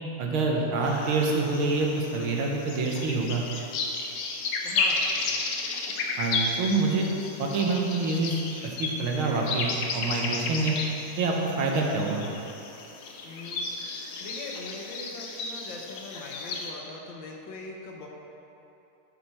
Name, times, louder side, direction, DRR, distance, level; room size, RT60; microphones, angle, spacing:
voice 1, 0.2-3.5 6.2-7.1 7.4-10.8 11.2-12.3, right 3 dB, 80° right, -1 dB, 1.8 m, -26 dB
sound 1, 0.8-16.7, left 3 dB, 90° left, 1.7 m, -33 dB
voice 2, 4.6-5.4 13.2-13.7 14.2-18.1, left 2 dB, 65° left, -1 dB, 1.6 m, -41 dB
10.0 x 6.1 x 4.2 m, 2.8 s
omnidirectional pair, 2.3 m